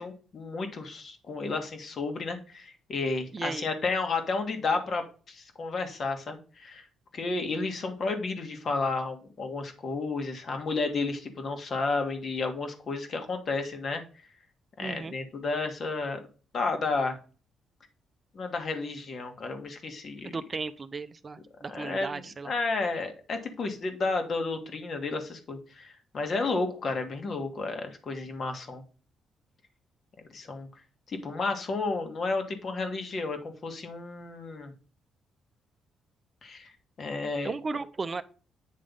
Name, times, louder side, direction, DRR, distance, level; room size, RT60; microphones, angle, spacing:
voice 1, 0.0-6.8 7.1-14.0 14.8-16.2 16.5-17.2 18.3-20.3 21.7-28.8 30.3-30.7 31.1-34.7 36.4-36.7 37.0-37.5, left 3 dB, 50° left, 6 dB, 1.6 m, -32 dB
voice 2, 3.3-3.7 14.8-15.1 20.2-22.5 37.4-38.2, right 4 dB, 35° right, 11 dB, 0.5 m, -35 dB
8.7 x 3.4 x 5.2 m, 0.37 s
cardioid pair, 90°, 0 cm